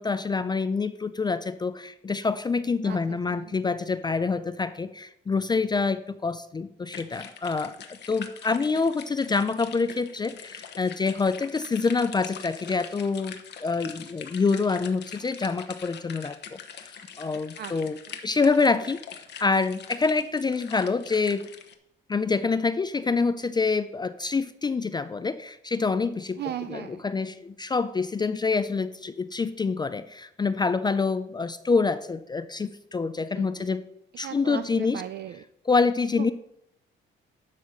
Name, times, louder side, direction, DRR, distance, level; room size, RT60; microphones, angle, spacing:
voice 1, 0.0-16.6 17.2-21.5 22.1-33.8 34.2-35.0 35.7-36.3, left 4 dB, 20° left, 12 dB, 0.4 m, -26 dB
voice 2, 2.8-3.5 17.6-18.2 26.3-27.0 33.3-33.7 34.2-35.4 36.2-36.3, right 11 dB, 55° right, 11 dB, 0.4 m, -38 dB
sound 1, 6.9-21.7, left 7 dB, 60° left, 1.0 m, -43 dB
11.5 x 4.1 x 6.2 m, 0.80 s
cardioid pair, 120°, 20 cm